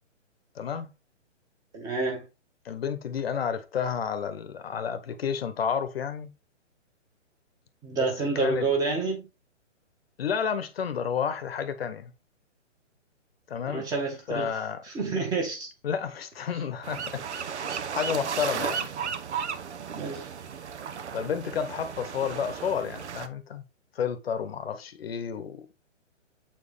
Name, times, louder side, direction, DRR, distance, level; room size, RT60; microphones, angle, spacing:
voice 1, 0.5-0.9 2.6-6.3 8.3-8.7 10.2-12.1 13.5-13.9 14.3-14.8 15.8-17.2 17.5-17.7 17.9-18.9 21.1-23.6 23.9-25.7, left 7 dB, 55° left, 1.1 m, -31 dB
voice 2, 1.7-2.2 7.8-9.2 13.7-14.5 14.8-15.7 19.9-20.3, right 3 dB, 10° right, 1.4 m, -28 dB
sound 1, 16.8-23.3, right 7 dB, 65° right, 1.1 m, -34 dB
8.1 x 4.4 x 3.4 m
hypercardioid pair, 160°, 37 cm